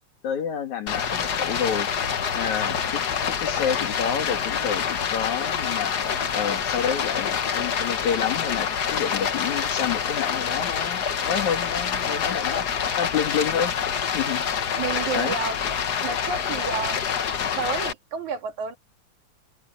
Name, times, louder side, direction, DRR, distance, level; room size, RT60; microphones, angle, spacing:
voice 1, 0.2-1.9 2.3-5.9 6.3-12.7 13.0-13.8 14.1-14.5 15.1-15.3, left 8 dB, 75° left, 3.5 m, -29 dB
Stream, 0.9-17.9, left 7 dB, 55° left, 1.2 m, -26 dB
voice 2, 14.7-15.6 16.0-17.0 17.6-18.8, right 6 dB, 75° right, 3.5 m, -30 dB
omnidirectional pair, 3.4 m